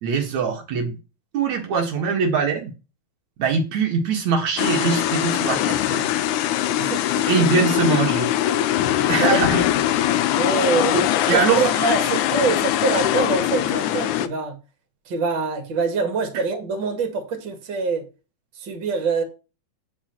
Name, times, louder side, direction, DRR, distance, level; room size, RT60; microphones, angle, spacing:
voice 1, 0.0-1.0 1.3-2.7 3.4-6.1 7.3-8.3 9.1-9.6 10.9-11.0 11.3-12.0 16.3-16.4, right 5 dB, 70° right, 2.8 m, -22 dB
sound 1, 4.6-14.3, left 12 dB, 85° left, 2.2 m, -22 dB
voice 2, 6.8-7.3 9.2-9.4 10.4-11.0 11.3-14.6 15.1-18.0 18.6-19.2, right 4 dB, 40° right, 2.7 m, -24 dB
9.6 x 5.0 x 5.9 m
omnidirectional pair, 3.4 m